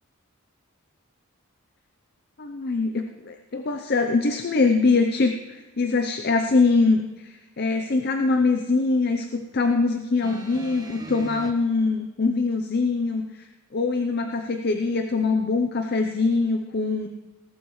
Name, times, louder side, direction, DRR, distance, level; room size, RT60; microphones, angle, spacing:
voice 1, 2.4-17.1, left 3 dB, 45° left, 5 dB, 0.7 m, -23 dB
sound 1, 10.2-11.5 12.5-12.6, right 1 dB, 20° right, 0.8 m, -40 dB
18.5 x 12.0 x 3.2 m, 1.2 s
head